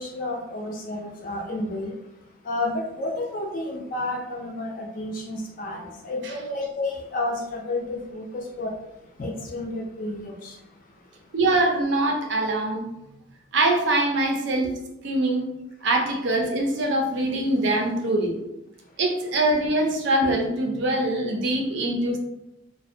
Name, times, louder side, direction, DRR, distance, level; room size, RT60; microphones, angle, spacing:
voice 1, 0.0-1.9 2.5-8.7 9.2-10.5, left 2 dB, 40° left, -1 dB, 0.4 m, -31 dB
voice 2, 11.3-12.8 13.5-14.7 15.0-15.5 15.8-18.4 19.0-22.2, right 2 dB, 60° right, 2 dB, 0.4 m, -23 dB
2.4 x 2.1 x 2.5 m, 0.89 s
head